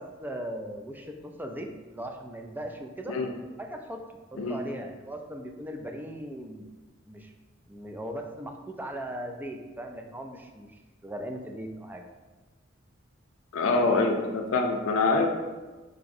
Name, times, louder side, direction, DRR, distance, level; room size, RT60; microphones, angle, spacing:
voice 1, 0.0-3.1 3.6-4.1 4.3-6.7 7.1-7.3 7.7-10.7 11.0-12.0, right 1 dB, 10° right, 3 dB, 0.3 m, -38 dB
voice 2, 13.5-15.3, left 3 dB, 85° left, 2 dB, 0.5 m, -25 dB
4.7 x 4.0 x 2.6 m, 1.2 s
head